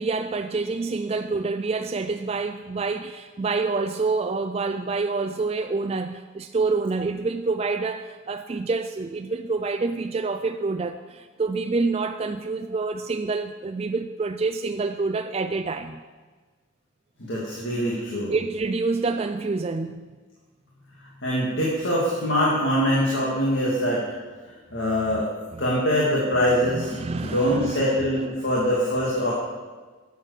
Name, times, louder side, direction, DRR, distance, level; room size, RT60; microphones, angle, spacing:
voice 1, 0.0-16.0 18.3-20.1 25.5-25.6 26.7-27.9, right 3 dB, 30° right, 7 dB, 0.3 m, -27 dB
voice 2, 17.2-18.3 21.2-24.0 24.7-25.3 25.6-29.3, equal, 60° left, -6 dB, 2.4 m, -23 dB
11.5 x 8.2 x 6.6 m, 1.4 s
head